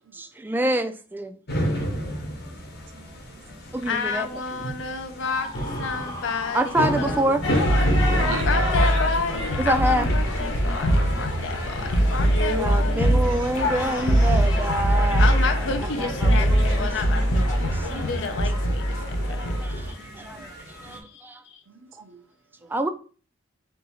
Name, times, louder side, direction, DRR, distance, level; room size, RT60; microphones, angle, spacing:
voice 1, 0.2-1.4 3.7-4.3 6.5-7.4 9.6-10.1 12.5-15.3 16.0-17.3 17.7-18.1 19.3-19.9 20.1-20.5 20.8-21.4 22.7-22.9, right 1 dB, 10° right, 0.3 m, -27 dB
sound 1, 1.5-21.0, equal, 55° left, 1.0 m, -34 dB
voice 2, 2.9-3.4 4.6-4.8 8.2-8.7 19.0-19.1 20.2-20.5 21.7-22.2, right 4 dB, 90° right, 0.6 m, -40 dB
voice 3, 3.9-5.5 5.8-7.3 8.4-13.2 15.2-19.6 19.9-20.0 20.9-21.2 21.5-21.6, left 5 dB, 75° left, 0.6 m, -31 dB
Screaming, 5.2-7.9, left 2 dB, 20° left, 0.8 m, -37 dB
sound 2, 7.4-19.9, equal, 90° left, 1.1 m, -22 dB
3.6 x 2.7 x 4.2 m
head